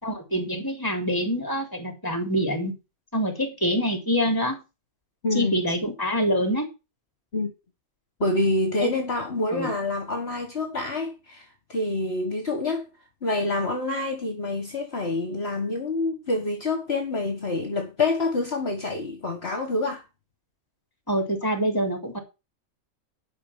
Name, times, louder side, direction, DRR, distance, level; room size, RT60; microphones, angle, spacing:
voice 1, 0.0-2.7 3.1-4.6 5.3-6.7 8.8-8.9 9.5-9.7 21.1-22.2, equal, 15° left, 3.8 m, -25 dB
voice 2, 5.2-5.6 7.3-7.5 8.2-12.9 13.2-20.0, left 2 dB, 45° left, 1.9 m, -27 dB
12.0 x 5.9 x 7.4 m
omnidirectional pair, 1.5 m